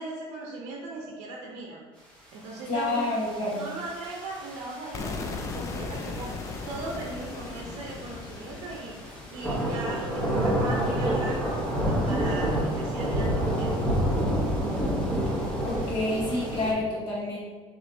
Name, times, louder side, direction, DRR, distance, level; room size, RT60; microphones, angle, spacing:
voice 1, 0.0-1.8 2.3-3.1 3.5-6.3 6.7-8.9 9.3-13.8, right 2 dB, 65° right, -2 dB, 0.7 m, -38 dB
sound 1, 2.6-16.7, right 1 dB, 10° left, 0.9 m, -29 dB
voice 2, 2.7-3.6 15.6-17.4, left 2 dB, 40° left, -4 dB, 1.3 m, -28 dB
sound 2, 4.9-10.8, left 3 dB, 25° left, 0.3 m, -38 dB
6.1 x 3.1 x 2.7 m, 1.4 s
cardioid pair, 165°, 12 cm